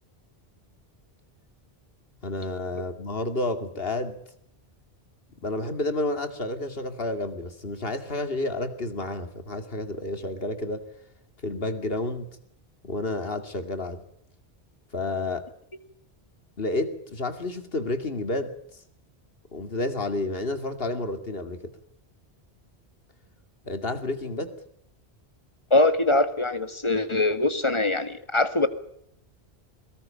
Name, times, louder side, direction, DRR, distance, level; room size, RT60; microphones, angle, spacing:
voice 1, 2.2-4.2 5.4-10.9 11.4-12.3 12.8-14.0 14.9-15.5 16.6-18.5 19.5-21.7 23.6-24.5, left 2 dB, 65° left, 9 dB, 2.6 m, -30 dB
voice 2, 25.7-28.7, left 2 dB, 30° left, 10 dB, 2.0 m, -23 dB
23.5 x 20.0 x 8.8 m, 0.70 s
omnidirectional pair, 1.1 m